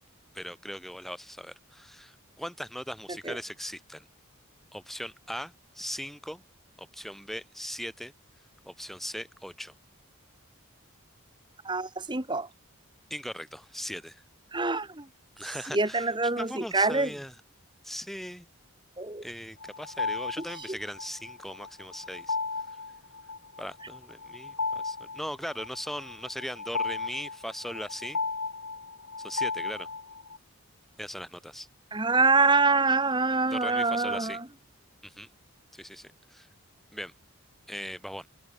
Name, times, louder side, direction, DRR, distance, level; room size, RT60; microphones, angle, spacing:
voice 1, 0.3-4.1 4.7-6.4 6.8-8.1 8.7-9.7 13.1-14.2 15.4-16.1 16.4-17.3 17.8-18.5 19.2-22.4 23.6-28.2 29.2-29.9 31.0-31.7 33.5-34.4 35.0-35.3 35.7-36.5 36.9-37.1 37.7-38.3, equal, ahead, 4.8 m, -39 dB
voice 2, 11.7-12.5 14.5-15.1 15.7-17.1 19.0-19.2 20.7-20.8 31.9-34.5, right 3 dB, 20° right, 1.9 m, -25 dB
sound 1, 19.6-30.4, left 4 dB, 75° left, 4.2 m, -35 dB
open air
head